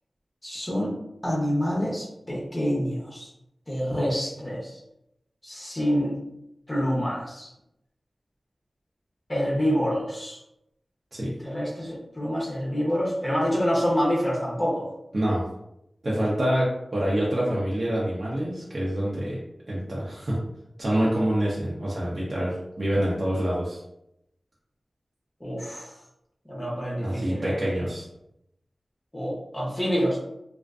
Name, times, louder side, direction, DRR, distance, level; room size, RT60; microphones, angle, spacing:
voice 1, 0.4-0.9 1.2-3.3 3.7-4.8 5.4-6.2 6.7-7.5 9.3-10.4 11.4-14.9 25.4-25.9 26.5-27.6 29.1-30.2, equal, 15° left, -5 dB, 0.6 m, -27 dB
voice 2, 15.1-15.4 16.0-19.4 19.7-20.4 20.8-23.8 27.0-28.0, right 1 dB, 50° right, -6 dB, 0.6 m, -26 dB
2.4 x 2.4 x 2.3 m, 0.82 s
wide cardioid pair, 85°, 0 cm